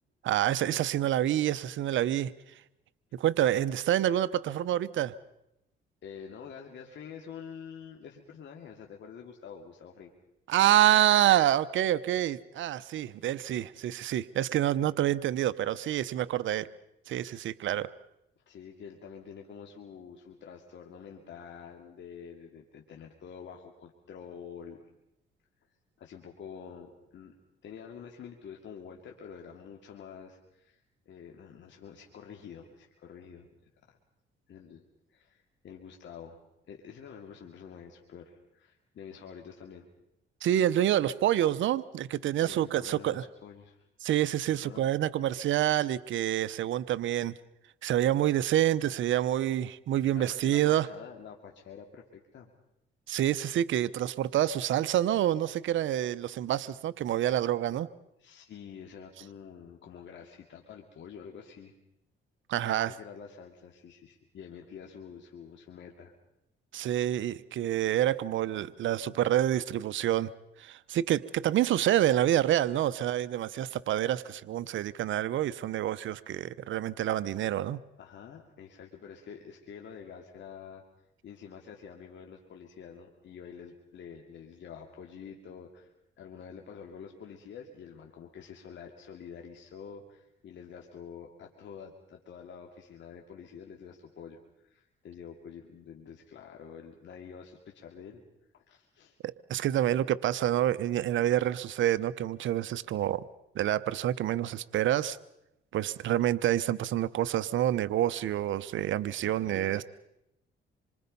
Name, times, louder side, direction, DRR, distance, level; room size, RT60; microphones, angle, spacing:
voice 1, 0.2-2.3 3.1-5.1 10.5-16.7 17.1-17.9 40.4-43.2 44.0-47.3 47.8-50.9 53.1-57.9 62.5-62.9 66.7-70.3 70.6-77.8 99.5-103.2 103.5-105.2 105.7-109.8, right 12 dB, 75° right, 16 dB, 0.8 m, -27 dB
voice 2, 6.0-10.1 14.6-14.7 18.4-24.8 26.0-27.3 27.6-33.5 33.8-34.0 34.5-34.8 35.1-36.4 36.7-39.9 42.4-43.9 44.5-44.8 50.1-52.5 57.2-57.3 58.2-61.7 62.6-66.1 78.0-80.8 81.2-98.2 98.5-99.2 109.2-109.8, left 7 dB, 65° left, 2 dB, 2.6 m, -47 dB
27.0 x 24.5 x 5.5 m, 0.84 s
cardioid pair, 90°, 20 cm